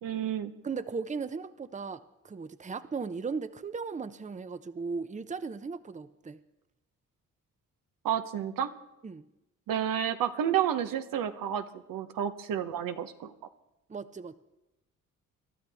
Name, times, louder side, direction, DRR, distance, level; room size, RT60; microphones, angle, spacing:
voice 1, 0.0-0.5 8.0-8.7 9.7-13.3, right 9 dB, 75° right, 9 dB, 0.9 m, -30 dB
voice 2, 0.6-6.4 9.0-9.2 13.9-14.4, right 5 dB, 20° right, 13 dB, 0.7 m, -37 dB
23.0 x 12.0 x 3.5 m, 0.94 s
supercardioid pair, 60°, 33 cm